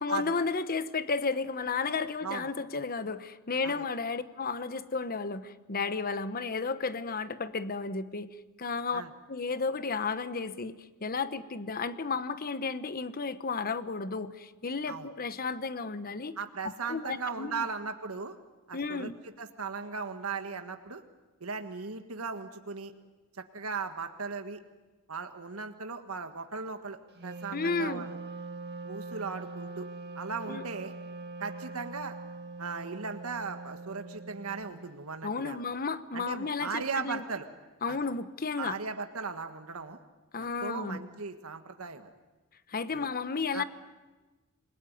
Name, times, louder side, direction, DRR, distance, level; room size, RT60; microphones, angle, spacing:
voice 1, 0.0-8.3 8.6-9.0 9.3-16.4 16.6-17.7 18.7-19.1 27.5-28.1 30.5-30.6 35.2-37.2 37.8-38.8 40.3-41.0 42.7-43.6, left 4 dB, 45° left, 13 dB, 1.0 m, -33 dB
voice 2, 16.4-18.4 18.7-19.1 19.4-21.0 21.4-22.9 23.4-24.6 25.1-28.2 28.8-29.9 30.1-30.9 31.4-32.2 32.6-35.6 36.1-37.5 37.9-38.0 38.6-40.0 40.4-42.1 42.9-43.1 43.5-43.6, right 5 dB, 85° right, 7 dB, 1.5 m, -37 dB
Wind instrument woodwind instrument, 27.1-35.0, right 3 dB, 50° right, 2.2 m, -43 dB
27.5 x 20.5 x 9.3 m, 1.2 s
head